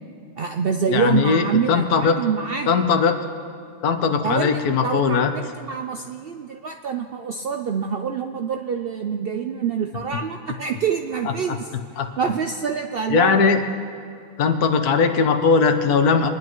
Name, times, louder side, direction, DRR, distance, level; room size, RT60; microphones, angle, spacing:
voice 1, 0.4-2.8 4.2-11.7 12.2-13.3, right 6 dB, 70° right, 4 dB, 0.5 m, -26 dB
voice 2, 0.9-2.2 2.7-3.1 3.8-5.3 11.2-11.6 12.0-12.1 13.1-13.6 14.4-16.3, left 5 dB, 90° left, 7 dB, 1.4 m, -19 dB
22.5 x 10.5 x 3.1 m, 2.4 s
omnidirectional pair, 1.6 m